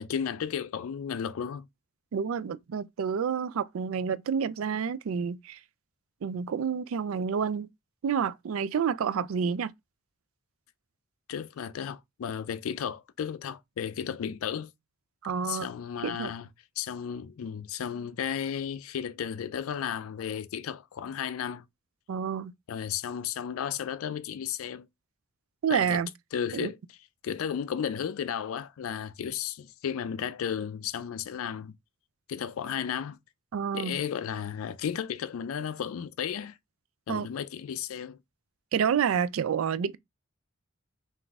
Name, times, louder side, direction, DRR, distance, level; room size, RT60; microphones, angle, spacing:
voice 1, 0.0-1.7 11.3-14.7 15.4-16.5 16.8-21.7 22.7-24.9 25.7-26.0 26.3-26.8 27.2-31.8 32.3-33.2 33.7-36.6 37.1-38.2, left 8 dB, 90° left, 0.4 m, -34 dB
voice 2, 2.1-5.6 6.2-7.7 8.0-9.7 15.2-15.7 16.0-16.3 22.1-22.5 25.6-26.1 26.5-26.7 33.5-34.0 37.1-37.3 38.7-40.0, right 7 dB, 80° right, 0.4 m, -29 dB
3.8 x 2.6 x 3.5 m
head